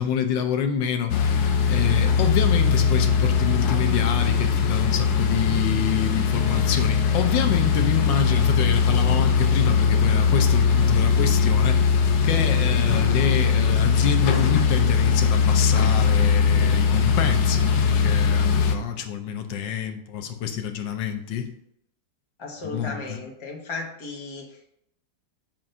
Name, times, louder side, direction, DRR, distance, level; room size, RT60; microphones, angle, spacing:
voice 1, 0.0-1.4 1.7-21.5 22.6-23.2, left 8 dB, 90° left, 7 dB, 1.4 m, -27 dB
sound 1, 1.1-18.8, left 6 dB, 70° left, 1.1 m, -20 dB
voice 2, 22.4-24.7, left 3 dB, 20° left, -1 dB, 0.9 m, -35 dB
7.4 x 2.6 x 5.4 m, 0.75 s
omnidirectional pair, 1.9 m